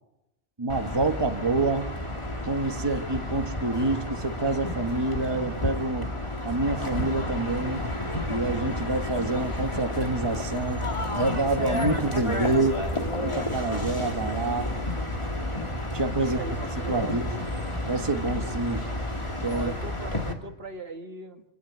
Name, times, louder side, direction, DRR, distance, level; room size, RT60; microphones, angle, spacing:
voice 1, 0.6-1.9 2.4-6.1 6.4-7.8 8.3-12.8 13.2-14.7 15.9-16.4 16.9-17.3 17.9-18.9 19.4-19.7, right 2 dB, 20° right, 5 dB, 1.3 m, -27 dB
sound 1, 0.7-20.3, left 1 dB, 25° left, 2.5 m, -31 dB
voice 2, 16.2-17.2 19.5-21.4, right 3 dB, 55° right, 6 dB, 1.7 m, -38 dB
26.5 x 17.5 x 9.5 m, 0.93 s
omnidirectional pair, 1.2 m